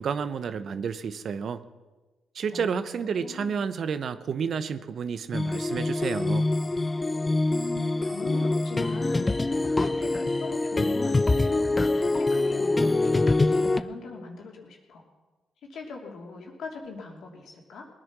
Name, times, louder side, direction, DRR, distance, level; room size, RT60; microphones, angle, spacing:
voice 1, 0.0-1.6 2.3-6.4, right 6 dB, 65° right, 12 dB, 0.8 m, -30 dB
voice 2, 2.5-3.7 7.0-15.0 15.7-17.8, left 3 dB, 75° left, 0 dB, 2.9 m, -41 dB
sound 1, 5.3-13.8, left 2 dB, 25° left, 0.7 m, -25 dB
19.5 x 9.5 x 6.1 m, 1.2 s
supercardioid pair, 60°, 0 cm